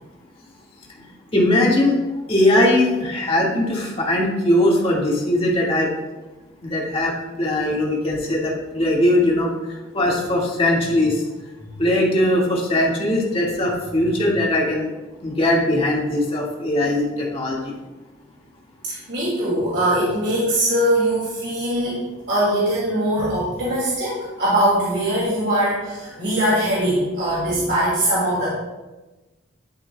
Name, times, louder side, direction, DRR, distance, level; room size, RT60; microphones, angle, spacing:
voice 1, 1.3-2.0 2.3-5.9 6.6-11.3 11.8-14.9 15.2-17.7, left 1 dB, 30° left, -3 dB, 1.9 m, -20 dB
voice 2, 18.8-22.0 22.3-28.5, right 1 dB, 65° right, -7 dB, 2.6 m, -21 dB
11.5 x 7.8 x 2.3 m, 1.1 s
head